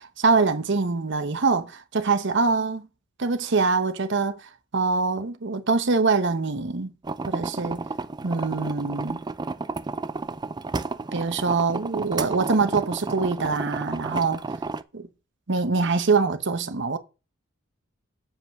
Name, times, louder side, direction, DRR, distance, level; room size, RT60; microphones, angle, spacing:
voice 1, 0.0-2.9 3.2-4.4 4.7-6.9 7.3-7.8 8.2-9.2 11.1-14.4 14.9-15.1 15.5-17.0, right 4 dB, 60° right, 0.9 m, -24 dB
sound 1, 7.0-14.8, right 3 dB, 20° right, 0.4 m, -32 dB
7.5 x 4.9 x 6.5 m
head